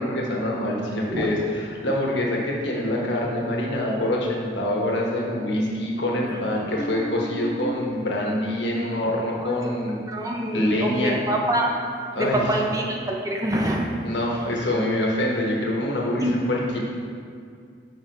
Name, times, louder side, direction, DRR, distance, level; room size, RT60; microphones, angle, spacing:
voice 1, 0.0-10.0 10.5-11.2 12.1-12.5 14.0-16.8, left 1 dB, 80° left, -2 dB, 1.2 m, -25 dB
voice 2, 6.3-7.7 9.4-9.7 10.1-11.8 12.2-13.9 16.2-16.4, right 1 dB, 20° right, 0 dB, 0.6 m, -26 dB
6.4 x 5.2 x 4.0 m, 2.3 s
head